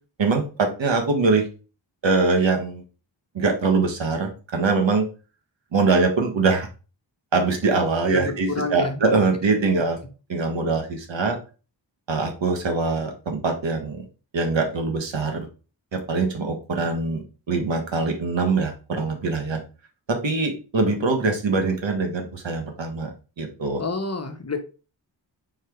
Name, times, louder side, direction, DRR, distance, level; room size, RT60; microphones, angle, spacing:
voice 1, 0.2-1.5 2.0-2.8 3.4-5.1 5.7-6.7 7.3-10.0 10.3-11.4 12.1-14.1 14.3-15.5 15.9-19.6 20.1-23.8, right 3 dB, 70° right, 3 dB, 1.6 m, -23 dB
voice 2, 8.1-9.0 23.8-24.6, left 3 dB, 35° left, 6 dB, 1.2 m, -28 dB
4.7 x 4.5 x 4.6 m, 0.35 s
cardioid pair, 70°, 46 cm